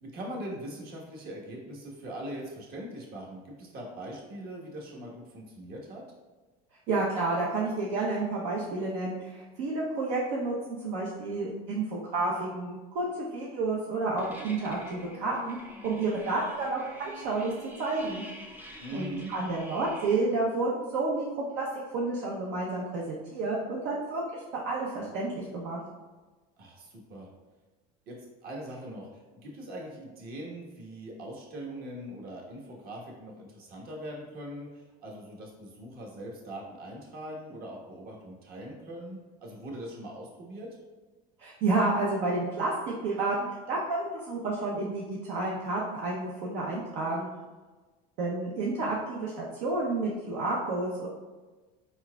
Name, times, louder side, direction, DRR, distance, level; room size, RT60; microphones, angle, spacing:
voice 1, 0.0-6.0 18.8-19.3 26.6-27.3 28.1-28.2 28.4-29.1 29.4-40.8, right 1 dB, 50° right, -2 dB, 1.3 m, -41 dB
voice 2, 6.9-15.6 15.8-17.5 17.8-18.2 18.9-21.3 21.5-21.7 21.9-25.8 41.4-42.7 43.0-43.4 43.7-47.3 48.2-51.1, right 3 dB, 70° right, -4 dB, 0.8 m, -30 dB
sound 1, 14.2-20.2, equal, 10° right, 0.6 m, -46 dB
4.5 x 4.4 x 2.3 m, 1.3 s
supercardioid pair, 115°, 19 cm